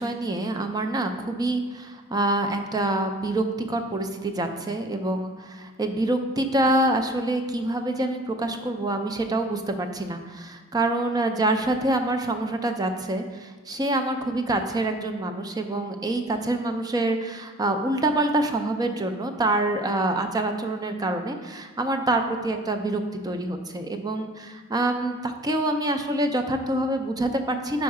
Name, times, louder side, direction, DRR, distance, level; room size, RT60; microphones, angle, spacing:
voice 1, 0.0-27.8, right 2 dB, 15° right, 6 dB, 0.4 m, -26 dB
5.2 x 4.7 x 4.8 m, 1.3 s
head